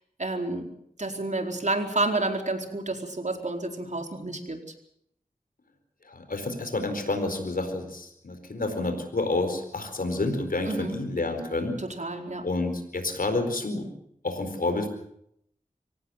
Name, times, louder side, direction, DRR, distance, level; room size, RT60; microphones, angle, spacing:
voice 1, 0.2-0.7 1.0-4.6 10.7-11.0 11.8-12.5, right 2 dB, 60° right, 4 dB, 4.6 m, -30 dB
voice 2, 6.0-11.8 12.4-13.9 14.2-14.9, left 2 dB, 90° left, 7 dB, 4.4 m, -29 dB
25.0 x 18.0 x 7.7 m, 0.71 s
wide cardioid pair, 45°, 14 cm